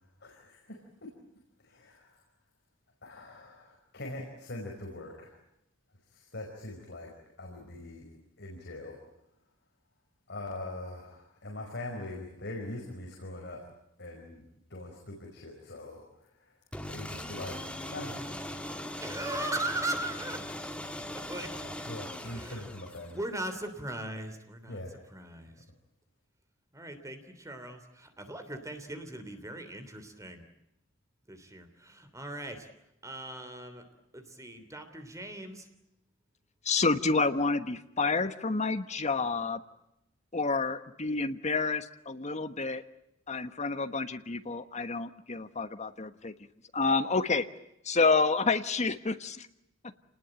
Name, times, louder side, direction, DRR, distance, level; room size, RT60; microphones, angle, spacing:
voice 1, 0.2-0.8 1.6-2.2 3.0-5.4 6.1-7.1 7.4-8.1 8.4-9.0 10.3-13.6 14.0-14.4 14.7-16.6 16.9-17.5 17.9-18.3 21.6-23.2 24.7-25.0, left 1 dB, 60° left, 0 dB, 5.2 m, -42 dB
sound 1, 16.7-23.3, left 1 dB, 5° left, 1.9 m, -40 dB
voice 2, 19.0-20.4 21.1-21.5 22.3-22.6 23.1-24.8 25.1-25.6 26.7-30.4 31.3-32.7 33.0-33.8 34.1-35.7, right 1 dB, 15° right, 7 dB, 3.2 m, -38 dB
voice 3, 36.6-39.6 40.3-42.8 43.3-46.3 46.7-47.4 47.8-49.5, left 4 dB, 35° left, 9 dB, 1.3 m, -29 dB
28.5 x 20.0 x 9.1 m, 0.85 s
head